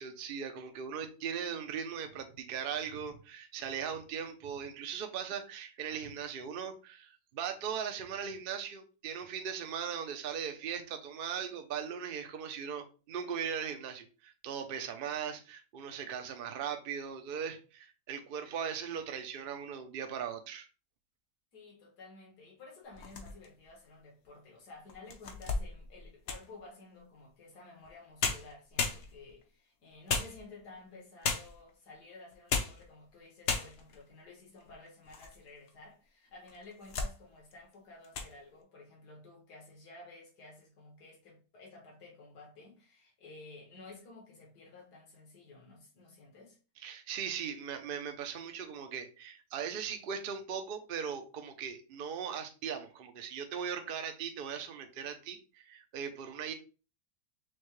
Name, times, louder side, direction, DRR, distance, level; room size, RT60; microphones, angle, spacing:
voice 1, 0.0-20.7 46.8-56.5, right 7 dB, 60° right, 0.5 m, -39 dB
voice 2, 21.5-46.6, left 3 dB, 80° left, 1.9 m, -53 dB
sound 1, 22.9-23.6 24.2-24.3 24.9-26.6 27.8-27.9 28.2-29.4 30.1-30.8 31.2-31.7 32.3-32.9 33.1-33.2 33.4-34.0 34.6-35.4 35.7-35.8 36.5-37.2 37.5-37.7 38.0-38.3, left 4 dB, 60° left, 0.8 m, -35 dB
6.2 x 2.2 x 3.1 m
omnidirectional pair, 1.7 m